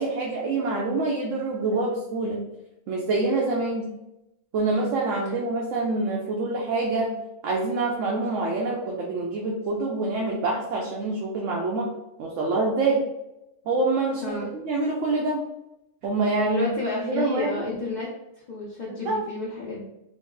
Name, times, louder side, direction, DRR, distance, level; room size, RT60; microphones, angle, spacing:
voice 1, 0.0-2.4 2.9-3.9 4.5-7.1 7.4-11.9 12.2-13.0 13.7-15.4 16.0-16.7 17.0-17.6 18.9-19.2, right 3 dB, 80° right, -2 dB, 1.0 m, -26 dB
voice 2, 16.4-18.1 18.5-19.9, left 3 dB, 45° left, -4 dB, 0.6 m, -31 dB
3.7 x 2.0 x 3.7 m, 0.89 s
omnidirectional pair, 1.3 m